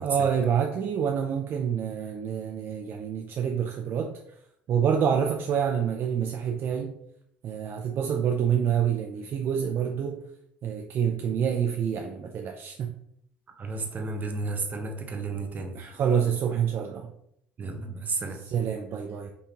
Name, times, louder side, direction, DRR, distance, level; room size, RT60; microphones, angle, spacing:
voice 1, 0.0-4.1 4.7-7.0 7.4-10.2 10.6-12.9 15.7-17.1 18.5-19.3, right 8 dB, 55° right, 3 dB, 0.4 m, -27 dB
voice 2, 13.5-15.8 17.6-18.4, right 3 dB, 35° right, 4 dB, 0.9 m, -32 dB
5.3 x 2.7 x 2.9 m, 0.73 s
supercardioid pair, 85°, 5 cm